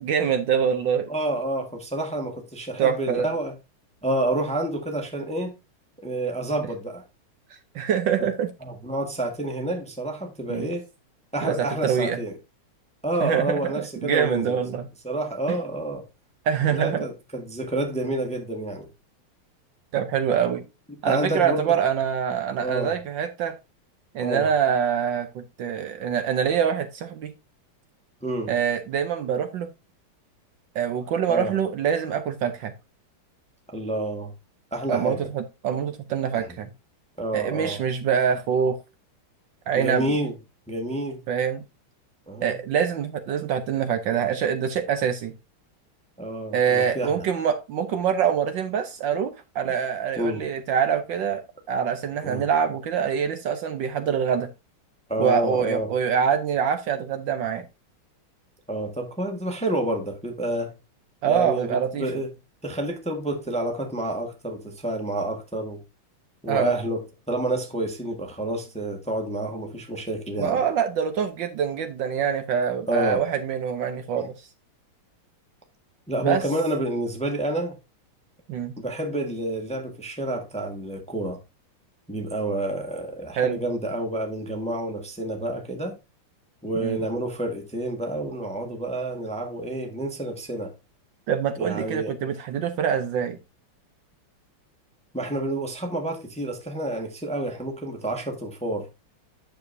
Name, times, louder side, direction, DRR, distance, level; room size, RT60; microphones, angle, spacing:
voice 1, 0.0-1.1 2.8-3.3 7.7-8.5 10.5-10.7 11.4-11.5 11.8-12.2 13.2-14.9 16.5-17.0 19.9-20.6 21.0-23.6 24.1-27.3 28.5-29.7 30.7-32.7 34.9-36.7 37.3-38.8 39.7-40.1 41.3-41.6 42.4-45.3 46.5-51.4 51.7-54.5 55.2-57.6 61.2-62.0 66.5-66.7 70.4-74.3 76.2-76.4 78.5-78.7 83.4-83.6 86.8-87.0 91.3-93.4, right 8 dB, 65° right, 1.3 m, -25 dB
voice 2, 1.1-3.5 4.0-5.5 6.0-7.0 8.6-10.9 11.3-12.4 13.0-14.6 15.0-16.0 16.7-18.9 21.0-21.8 22.6-22.9 24.2-24.5 28.2-28.5 31.3-31.5 33.7-34.3 34.7-35.2 36.3-36.4 37.2-37.8 39.8-40.4 40.7-41.2 42.3-42.6 46.2-47.2 50.2-50.5 52.2-52.5 55.1-55.9 58.7-60.7 61.3-62.3 62.6-65.8 66.4-70.6 72.9-73.2 76.1-77.8 78.8-81.4 82.1-86.0 86.6-90.7 91.6-92.2 95.1-98.9, right 1 dB, 5° left, 1.1 m, -29 dB
9.7 x 6.9 x 2.6 m
omnidirectional pair, 2.4 m